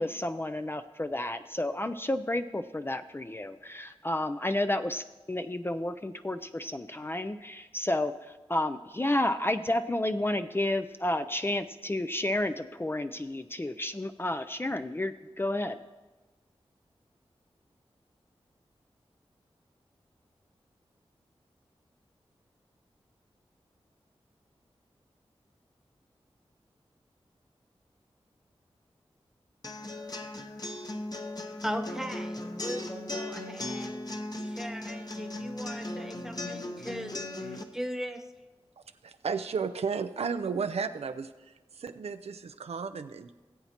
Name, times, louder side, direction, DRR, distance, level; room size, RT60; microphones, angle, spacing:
voice 1, 0.0-15.8, left 1 dB, 20° left, 9 dB, 0.4 m, -31 dB
sound 1, 29.6-37.6, left 1 dB, 40° left, 1.0 m, -37 dB
voice 2, 31.6-34.0 34.4-38.2, equal, 5° right, 4 dB, 1.1 m, -39 dB
voice 3, 39.0-43.3, right 5 dB, 80° right, 9 dB, 0.5 m, -33 dB
18.5 x 7.9 x 2.9 m, 1.2 s
cardioid pair, 40°, 11 cm